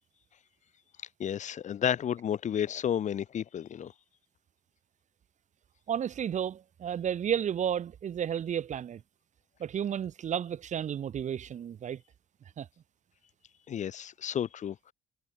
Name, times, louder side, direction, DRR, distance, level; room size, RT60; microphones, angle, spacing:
voice 1, 1.2-3.9 13.7-14.9, left 9 dB, 45° left, 1.0 m, -32 dB
voice 2, 5.9-9.0 9.6-12.0 12.6-12.7, right 9 dB, 45° right, 1.3 m, -32 dB
cardioid pair, 110°, 17 cm